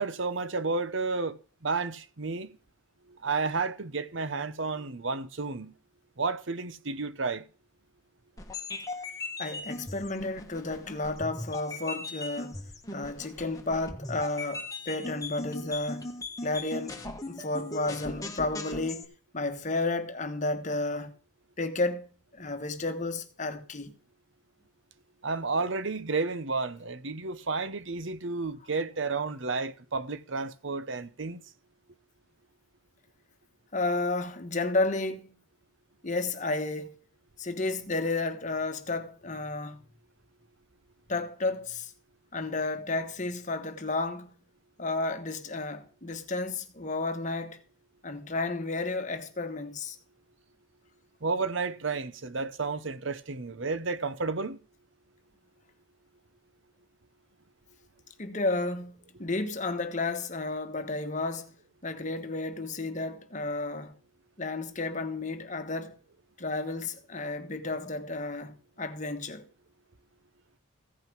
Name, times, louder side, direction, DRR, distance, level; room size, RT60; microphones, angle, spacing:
voice 1, 0.0-2.6 3.1-5.7 6.2-7.4 25.2-31.4 51.2-54.6, right 4 dB, 65° right, 0.9 m, -31 dB
sound 1, 8.4-19.0, left 2 dB, 15° left, 1.4 m, -39 dB
voice 2, 9.4-12.6 12.9-16.1 16.4-21.2 21.6-22.1 22.3-23.9 33.7-35.3 36.0-37.0 37.4-39.8 41.1-41.9 42.3-44.3 44.8-47.6 48.0-50.0 58.2-58.9 59.2-61.5 61.8-64.0 64.4-66.0 66.4-69.4, left 2 dB, 35° left, 1.3 m, -32 dB
15.5 x 5.8 x 6.1 m
head